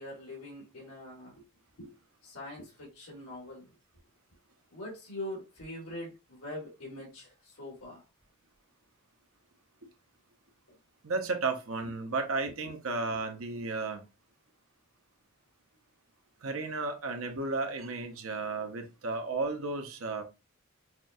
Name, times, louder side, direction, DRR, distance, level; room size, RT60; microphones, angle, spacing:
voice 1, 0.0-1.4 1.8-1.9 2.2-3.7 4.7-8.0 12.6-12.7 13.1-13.2, left 1 dB, 90° left, 2.0 m, -43 dB
voice 2, 11.0-14.0 16.4-20.2, right 3 dB, 70° right, 0.9 m, -33 dB
5.9 x 2.4 x 2.6 m
head